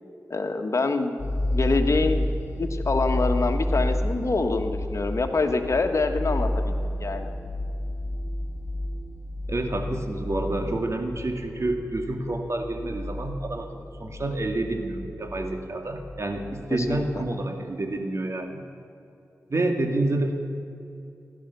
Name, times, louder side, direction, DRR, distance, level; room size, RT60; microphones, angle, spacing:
voice 1, 0.3-1.2 1.5-2.3 2.6-7.3 16.7-17.2, left 3 dB, 55° left, 6 dB, 1.6 m, -26 dB
sound 1, 1.2-17.3, left 1 dB, 40° left, 4.2 m, -31 dB
voice 2, 9.5-18.6 19.5-20.3, right 2 dB, 55° right, 4 dB, 2.1 m, -28 dB
16.5 x 12.0 x 7.0 m, 2.7 s
cardioid pair, 45°, 6 cm